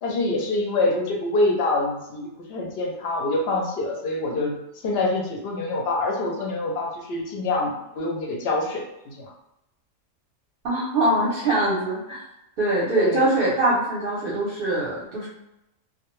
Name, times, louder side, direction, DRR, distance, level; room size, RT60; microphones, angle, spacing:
voice 1, 0.0-4.6 4.8-9.3 13.0-13.3, left 2 dB, 65° left, -1 dB, 0.7 m, -25 dB
voice 2, 10.6-12.2 12.6-15.3, right 1 dB, 55° right, -5 dB, 0.7 m, -23 dB
2.2 x 2.1 x 3.0 m, 0.89 s
omnidirectional pair, 1.3 m